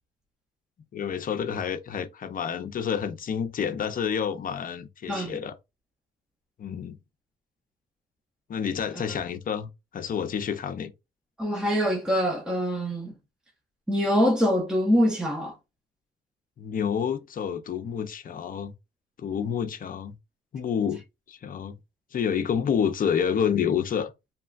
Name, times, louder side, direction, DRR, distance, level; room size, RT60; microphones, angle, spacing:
voice 1, 0.9-5.6 6.6-7.0 8.5-10.9 16.6-18.7 19.2-20.1 20.5-21.0 21.3-21.8 22.1-24.1, left 7 dB, 45° left, 0.5 m, -29 dB
voice 2, 11.4-13.1 13.9-15.5, equal, 5° right, 0.6 m, -24 dB
2.9 x 2.2 x 2.4 m
cardioid pair, 90°, 20 cm